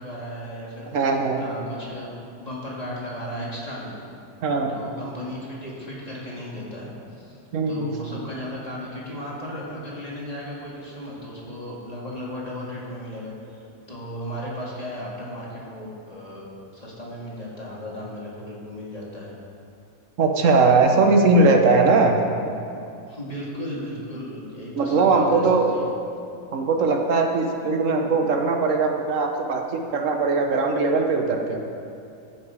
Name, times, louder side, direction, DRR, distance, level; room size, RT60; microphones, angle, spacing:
voice 1, 0.0-1.1 1.4-2.1 2.4-4.0 4.6-6.9 7.2-7.4 7.7-13.6 13.9-16.4 16.7-19.3 23.1-25.9, equal, 25° left, -5 dB, 2.0 m, -35 dB
voice 2, 0.9-1.4 4.4-4.7 7.5-7.9 20.2-22.2 24.7-25.7 26.5-31.7, right 3 dB, 65° right, 3 dB, 1.3 m, -20 dB
14.0 x 6.0 x 4.8 m, 2.5 s
omnidirectional pair, 1.5 m